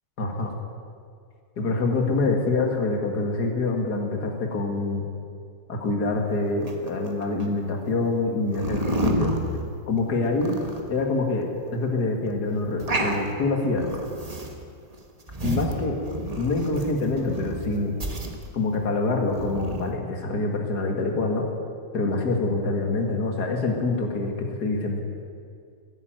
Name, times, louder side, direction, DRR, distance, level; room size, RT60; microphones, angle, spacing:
voice 1, 0.2-0.5 1.6-5.1 5.7-9.3 9.9-10.6 10.9-13.8 15.4-16.0 16.4-17.9 18.5-21.5 21.9-25.0, left 3 dB, 50° left, 2 dB, 2.5 m, -25 dB
sound 1, 6.6-7.5 8.5-10.0 10.3-11.0 11.4-11.5 11.7-11.8 12.3-12.4 12.6-13.3 13.7-14.6 14.9-17.6 18.0-18.7 19.2-19.9, right 1 dB, 25° right, 1.1 m, -30 dB
14.0 x 11.0 x 9.2 m, 2.3 s
omnidirectional pair, 2.2 m